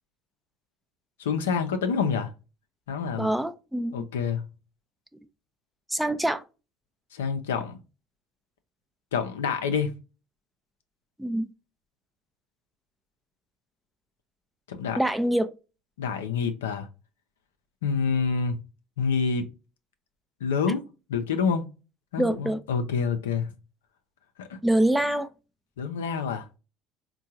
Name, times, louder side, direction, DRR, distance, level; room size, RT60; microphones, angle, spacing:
voice 1, 1.2-2.3 2.9-3.3 3.9-4.5 7.1-7.8 9.1-10.0 14.7-15.0 16.0-16.9 17.8-18.6 19.0-19.5 20.4-20.8 21.1-21.7 22.1-23.5 24.4-24.6 25.8-26.5, left 6 dB, 80° left, 0.5 m, -27 dB
voice 2, 3.2-4.1 5.9-6.4 11.2-11.5 15.0-15.5 22.2-22.6 24.6-25.3, right 1 dB, 5° right, 0.5 m, -25 dB
4.5 x 2.2 x 2.7 m
hypercardioid pair, 65°, 0 cm